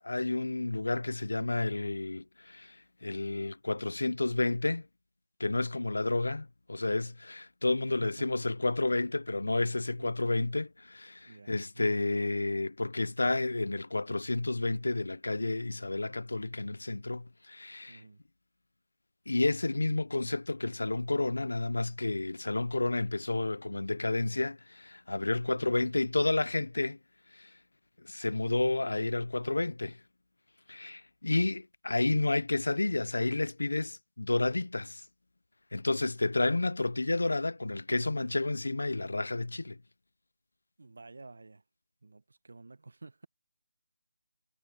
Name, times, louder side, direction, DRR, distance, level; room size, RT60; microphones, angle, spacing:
voice 1, 0.0-4.9 5.4-18.0 19.3-27.0 27.3-27.5 28.0-30.0 30.7-35.0 35.7-39.8, left 2 dB, 80° left, 0.7 m, -31 dB
voice 2, 11.3-11.9 17.9-18.2 40.8-41.6 42.0-43.3, right 3 dB, 70° right, 1.1 m, -50 dB
figure-of-eight pair, 160°, 0 cm